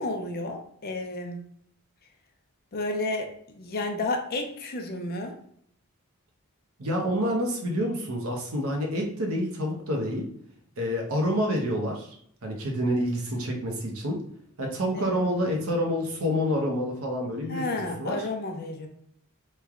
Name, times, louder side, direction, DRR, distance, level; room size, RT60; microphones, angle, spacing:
voice 1, 0.0-1.6 2.7-5.4 14.9-15.2 17.5-18.9, left 2 dB, 45° left, 4 dB, 0.5 m, -32 dB
voice 2, 6.8-10.3 10.8-12.2 12.4-14.2 14.6-18.2, equal, 65° right, 1 dB, 0.8 m, -28 dB
3.1 x 2.2 x 3.6 m, 0.66 s
head